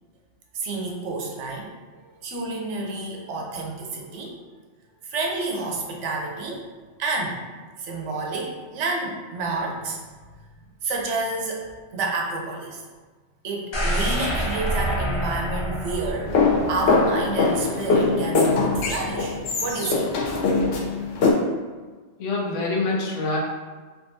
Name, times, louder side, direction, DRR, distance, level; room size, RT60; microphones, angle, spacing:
voice 1, 0.5-1.7 2.1-4.3 5.0-6.6 7.0-7.5 7.8-10.1 10.8-11.7 11.9-12.8 13.4-16.3 16.7-20.1, right 3 dB, 85° right, 0 dB, 0.9 m, -29 dB
sound 1, 13.7-17.7 18.1-18.2, equal, 45° left, 0.3 m, -27 dB
sound 2, 16.3-21.3, left 3 dB, 65° left, 0.8 m, -22 dB
voice 2, 22.2-23.4, left 3 dB, 90° left, -2 dB, 1.0 m, -25 dB
3.4 x 2.5 x 2.6 m, 1.3 s
omnidirectional pair, 1.2 m